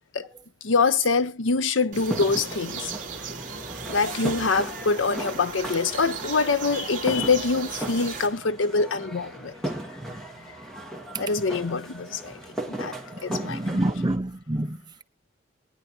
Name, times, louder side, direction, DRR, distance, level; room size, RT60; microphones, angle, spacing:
voice 1, 0.6-2.9 3.9-9.5 11.2-12.4 12.7-12.9 13.2-13.6, left 4 dB, 90° left, 0.8 m, -24 dB
sound 1, 1.9-8.3, right 5 dB, 40° right, 2.5 m, -37 dB
sound 2, 2.0-14.2, right 1 dB, ahead, 1.7 m, -37 dB
voice 2, 13.3-15.0, right 1 dB, 20° right, 0.6 m, -27 dB
21.5 x 9.9 x 2.7 m
head